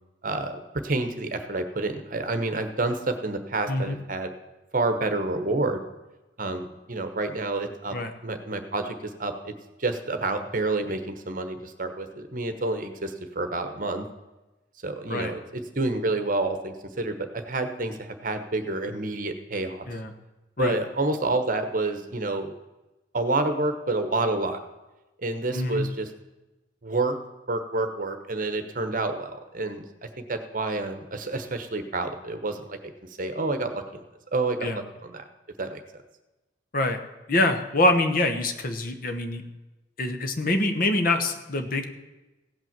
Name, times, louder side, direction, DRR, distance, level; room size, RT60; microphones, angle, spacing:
voice 1, 0.2-4.3 4.7-5.8 6.4-8.0 8.2-9.5 9.8-14.1 14.8-19.8 20.6-22.5 23.1-24.6 25.2-26.1 26.8-27.2 27.5-29.8 30.3-32.8 33.2-34.0 34.3-35.2 35.6-35.8, right 2 dB, 45° right, 8 dB, 1.1 m, -28 dB
voice 2, 3.7-4.0 7.9-8.1 15.1-15.3 19.9-20.1 20.6-20.8 25.5-25.9 34.6-34.8 36.7-37.0 37.3-39.4 40.0-41.9, left 2 dB, 50° left, 7 dB, 1.0 m, -25 dB
16.0 x 5.7 x 7.4 m, 1.1 s
head